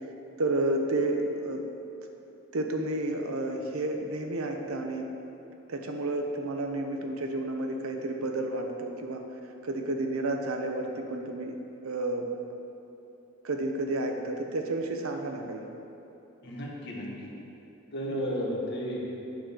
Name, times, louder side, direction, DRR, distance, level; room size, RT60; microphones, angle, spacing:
voice 1, 0.4-1.6 2.5-5.1 5.7-9.2 9.6-11.5 11.8-12.2 13.4-15.6 18.1-18.2, right 2 dB, 90° right, 3 dB, 0.8 m, -31 dB
voice 2, 16.4-17.3 17.9-19.1, equal, 55° left, -3 dB, 1.4 m, -33 dB
9.0 x 3.8 x 6.6 m, 3.0 s
head